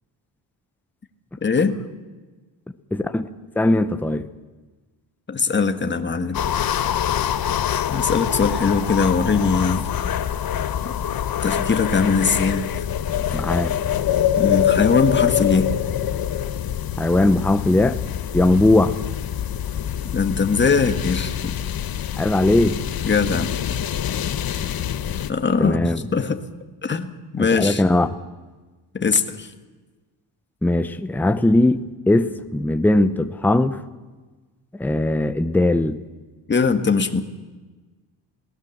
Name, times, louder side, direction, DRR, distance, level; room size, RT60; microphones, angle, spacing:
voice 1, 1.4-1.8 5.3-6.4 7.9-9.9 10.8-10.9 11.4-12.7 14.4-15.7 20.1-21.5 23.0-23.5 25.3-26.4 26.8-27.8 28.9-29.5 36.5-37.2, left 4 dB, 25° left, 1.6 m, -21 dB
voice 2, 2.9-3.3 3.6-4.2 13.3-13.8 17.0-18.0 18.3-18.9 22.2-22.8 25.6-26.0 27.4-28.1 30.6-33.8 34.7-36.0, left 1 dB, 5° left, 0.8 m, -19 dB
sound 1, 6.3-25.3, left 10 dB, 55° left, 1.1 m, -25 dB
28.0 x 18.5 x 7.2 m
wide cardioid pair, 155°, 43 cm